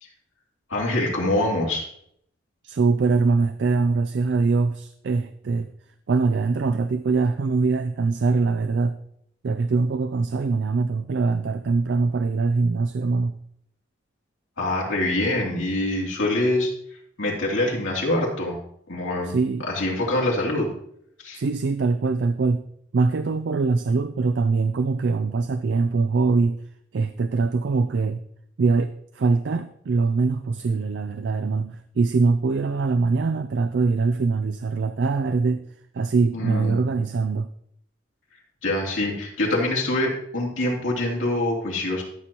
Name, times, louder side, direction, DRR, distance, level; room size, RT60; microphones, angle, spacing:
voice 1, 0.7-1.9 14.6-16.7 17.2-18.6 18.9-20.7 21.2-21.4 36.3-36.8 38.6-42.0, left 1 dB, 85° left, -3 dB, 2.8 m, -25 dB
voice 2, 2.6-5.7 6.1-9.0 9.4-13.4 19.2-19.7 21.3-22.7 22.9-26.6 26.9-28.2 28.6-35.6 35.9-37.5, right 4 dB, 65° right, 10 dB, 0.4 m, -23 dB
13.0 x 6.9 x 3.0 m, 0.70 s
head